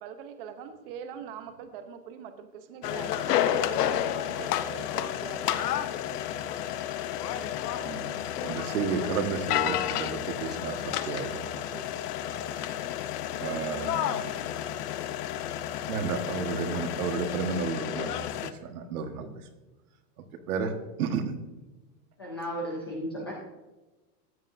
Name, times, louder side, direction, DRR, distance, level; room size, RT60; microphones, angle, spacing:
voice 1, 0.0-5.6 6.0-6.9 11.5-12.1, right 8 dB, 35° right, 8 dB, 0.9 m, -44 dB
sound 1, 2.8-18.5, left 11 dB, 70° left, 0.8 m, -31 dB
voice 2, 7.8-11.4 13.4-14.4 15.9-19.3 20.5-21.3, right 5 dB, 65° right, 6 dB, 1.5 m, -32 dB
voice 3, 22.2-23.3, equal, 20° left, -3 dB, 0.4 m, -34 dB
14.0 x 9.5 x 2.6 m, 1.1 s
supercardioid pair, 175°, 48 cm